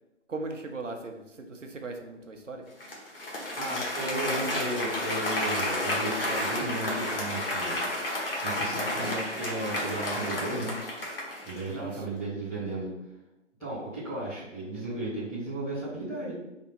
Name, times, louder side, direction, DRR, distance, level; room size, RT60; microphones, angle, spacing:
voice 1, 0.3-2.6 11.7-12.0, right 3 dB, 85° right, 3 dB, 0.9 m, -38 dB
Applause, 2.8-11.7, left 1 dB, 50° left, 1.3 m, -31 dB
voice 2, 3.6-7.8 8.4-10.7 11.4-12.9 13.6-16.3, right 1 dB, 5° left, -18 dB, 0.8 m, -34 dB
3.5 x 2.7 x 4.3 m, 0.95 s
figure-of-eight pair, 160°, 37 cm